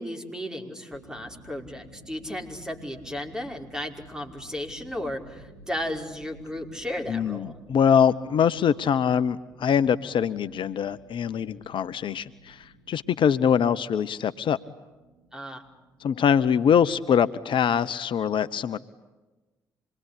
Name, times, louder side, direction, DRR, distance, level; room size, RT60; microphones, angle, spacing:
voice 1, 0.0-7.6 15.3-15.6, left 1 dB, 5° right, 2 dB, 5.5 m, -34 dB
sound 1, 0.9-18.0, right 1 dB, 75° right, 5.1 m, -53 dB
voice 2, 7.1-14.6 16.0-18.8, left 8 dB, 55° left, 14 dB, 0.8 m, -23 dB
27.0 x 21.5 x 10.0 m, 1.2 s
hypercardioid pair, 45°, 10 cm